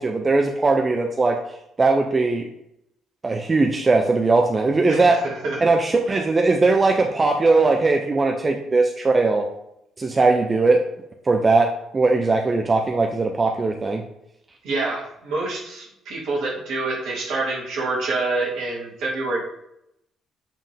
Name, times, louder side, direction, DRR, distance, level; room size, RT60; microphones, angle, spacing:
voice 1, 0.0-1.4 1.8-2.4 3.2-5.2 5.6-9.5 10.0-10.8 11.3-14.0, right 3 dB, 30° right, 3 dB, 0.7 m, -19 dB
voice 2, 4.9-5.6 6.1-6.2 14.6-19.4, right 3 dB, 65° right, -3 dB, 2.0 m, -27 dB
7.5 x 3.6 x 3.5 m, 0.80 s
hypercardioid pair, 45°, 0 cm